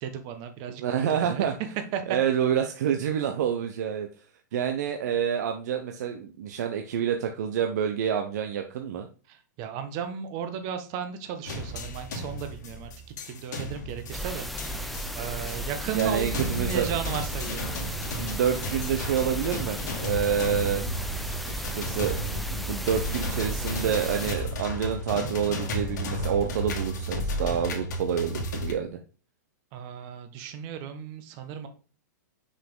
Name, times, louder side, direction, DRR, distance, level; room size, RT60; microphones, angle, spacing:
voice 1, 0.0-1.5 1.9-2.2 9.3-12.9 13.3-14.5 14.8-17.7 29.7-31.7, right 7 dB, 40° right, 7 dB, 1.2 m, -35 dB
voice 2, 0.8-1.5 2.1-4.1 4.5-9.1 15.9-16.9 18.2-20.8 21.5-22.1 22.5-29.0, right 8 dB, 65° right, 5 dB, 0.8 m, -28 dB
sound 1, 11.4-28.7, equal, 65° left, 2.1 m, -33 dB
sound 2, 14.1-24.4, equal, ahead, 0.6 m, -35 dB
6.3 x 5.1 x 3.8 m, 0.36 s
hypercardioid pair, 140°, 10 cm